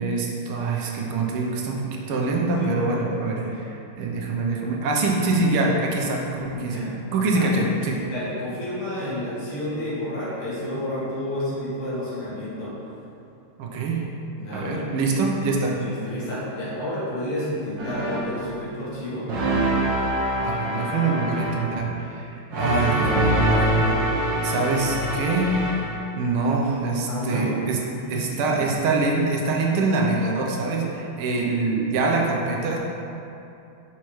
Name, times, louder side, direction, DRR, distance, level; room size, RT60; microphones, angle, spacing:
voice 1, 0.0-6.8 7.1-8.0 13.6-14.0 14.5-15.8 20.4-24.0 24.4-25.6 26.2-27.8 28.1-32.8, right 3 dB, 90° right, -1 dB, 1.6 m, -24 dB
voice 2, 2.6-3.7 6.5-6.9 7.2-7.6 8.1-12.7 14.4-14.8 15.7-19.3 27.1-27.5 27.9-28.7, left 1 dB, 80° left, -9 dB, 2.5 m, -31 dB
sound 1, 17.8-18.5 19.3-21.8 22.5-26.0, right 1 dB, 65° right, 1.8 m, -24 dB
6.1 x 5.6 x 3.1 m, 2.8 s
omnidirectional pair, 2.3 m